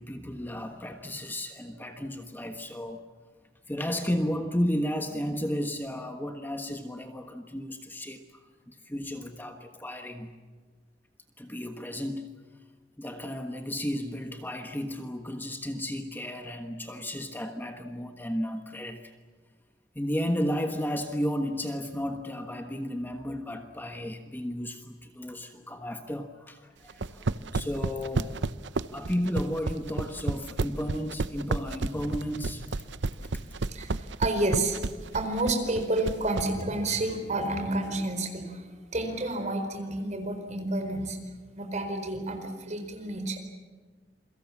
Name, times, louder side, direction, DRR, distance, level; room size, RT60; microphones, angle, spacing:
voice 1, 0.0-3.0 3.7-8.2 8.7-10.3 11.4-12.4 13.0-19.1 19.9-28.4 28.9-32.7 33.3-33.4, equal, 10° left, 5 dB, 1.4 m, -33 dB
sound 1, 26.9-36.5, right 3 dB, 75° right, 0.7 m, -30 dB
sound 2, 31.9-35.7 36.0-37.9, equal, 80° left, 5.2 m, -46 dB
voice 2, 33.7-41.2 41.6-43.4, right 2 dB, 40° right, 6 dB, 4.6 m, -30 dB
28.5 x 23.0 x 7.3 m, 1.4 s
head